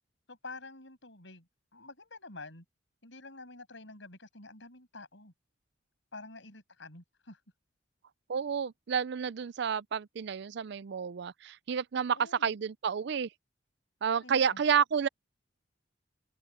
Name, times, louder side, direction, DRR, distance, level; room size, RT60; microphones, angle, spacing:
voice 1, 0.3-2.6 3.0-5.3 6.1-7.4 12.1-12.5 14.2-14.6, left 3 dB, 65° left, 6.8 m, -48 dB
voice 2, 8.3-13.3 14.0-15.1, right 7 dB, 60° right, 0.4 m, -30 dB
head